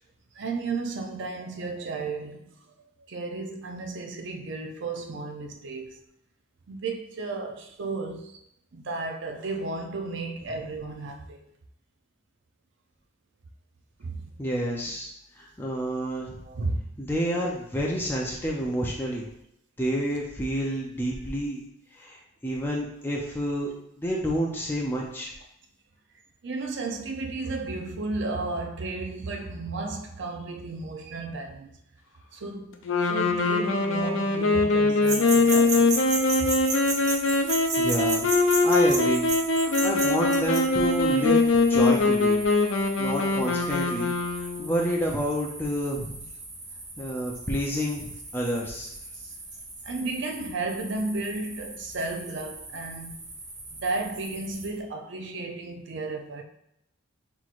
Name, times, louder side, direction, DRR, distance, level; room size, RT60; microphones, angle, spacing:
voice 1, 0.4-2.5 3.1-6.0 6.7-8.4 8.7-11.4 14.0-14.2 16.5-16.8 26.4-31.7 32.3-36.5 49.2-49.3 49.9-53.3 53.7-56.4, right 3 dB, 65° right, 0.5 m, -33 dB
voice 2, 14.4-15.1 15.4-16.3 17.0-19.3 19.8-21.6 21.9-23.7 24.0-25.3 37.8-38.3 38.6-39.3 39.6-42.4 43.0-46.2 47.0-48.9, equal, 10° left, 0.5 m, -29 dB
Sax Alto - F minor, 32.9-44.7, left 3 dB, 80° left, 0.5 m, -23 dB
sound 1, 35.0-54.8, right 2 dB, 40° right, 0.9 m, -36 dB
5.8 x 3.0 x 2.5 m
head